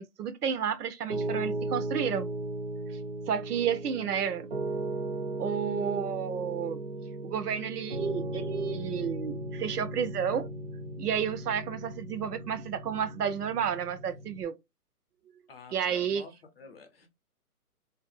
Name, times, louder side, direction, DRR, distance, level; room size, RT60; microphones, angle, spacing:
voice 1, 0.0-2.3 3.3-4.5 5.4-6.8 7.2-10.5 11.0-14.5 15.7-16.2, right 8 dB, 75° right, 0.6 m, -31 dB
Piano, 1.1-14.4, right 2 dB, 40° right, 0.5 m, -36 dB
voice 2, 15.5-17.1, left 4 dB, 40° left, 0.6 m, -50 dB
2.6 x 2.2 x 2.4 m
hypercardioid pair, 160°, 46 cm